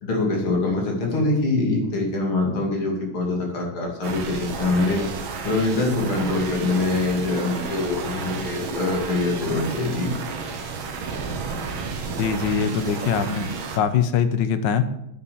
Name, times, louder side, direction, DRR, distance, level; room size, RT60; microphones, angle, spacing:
voice 1, 0.0-10.1, left 2 dB, 80° left, -1 dB, 3.5 m, -24 dB
sound 1, 4.0-13.8, right 4 dB, 75° right, 2.0 m, -31 dB
voice 2, 12.2-13.5 13.7-14.8, left 7 dB, 65° left, 11 dB, 1.4 m, -22 dB
8.8 x 7.4 x 7.0 m, 0.84 s
omnidirectional pair, 2.3 m